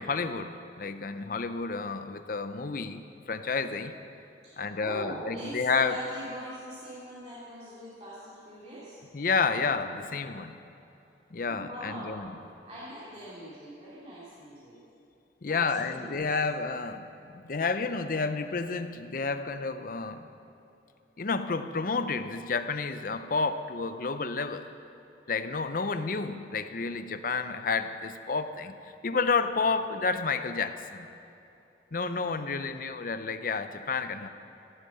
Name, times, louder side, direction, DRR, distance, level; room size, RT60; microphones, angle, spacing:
voice 1, 0.0-3.0 3.3-3.9 4.6-6.0 9.1-10.6 11.3-12.3 15.4-17.1 17.3-20.3 21.2-24.7 25.3-28.8 29.0-31.1 31.9-34.3, left 4 dB, 50° left, 10 dB, 0.6 m, -30 dB
voice 2, 4.4-9.0 11.4-12.2 12.6-14.8 15.5-16.2, equal, 40° right, -9 dB, 2.6 m, -42 dB
14.5 x 8.3 x 7.0 m, 2.8 s
head